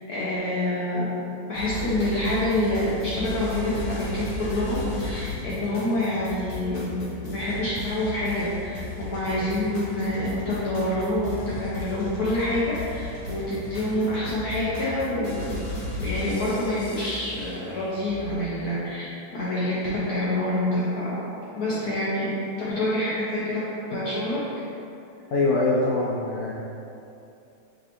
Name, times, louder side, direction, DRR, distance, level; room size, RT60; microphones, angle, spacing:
voice 1, 0.1-15.5 16.0-21.1 21.5-23.6 23.9-24.4, left 1 dB, 65° left, -8 dB, 1.0 m, -27 dB
sound 1, 1.5-17.5, left 1 dB, 50° left, 1.3 m, -35 dB
sound 2, 8.8-18.3, equal, 40° right, 1.5 m, -44 dB
voice 2, 25.3-26.5, left 2 dB, 85° left, -7 dB, 0.8 m, -23 dB
5.0 x 3.3 x 2.9 m, 2.7 s
omnidirectional pair, 2.3 m